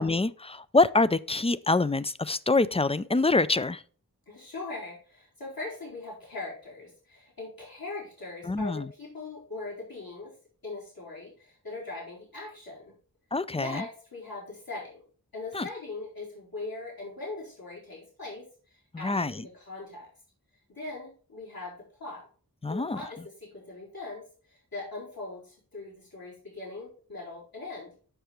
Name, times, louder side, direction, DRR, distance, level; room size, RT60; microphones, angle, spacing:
voice 1, 0.0-3.8 8.4-8.9 13.3-13.9 15.5-15.7 18.9-19.5 22.6-23.0, left 3 dB, 15° left, 16 dB, 0.3 m, -25 dB
voice 2, 4.3-10.3 10.6-12.9 13.5-15.0 15.3-20.1 20.7-21.7 22.0-22.2 22.7-27.9, left 3 dB, 70° left, -6 dB, 4.5 m, -40 dB
6.8 x 6.8 x 4.3 m, 0.40 s
wide cardioid pair, 60°, 37 cm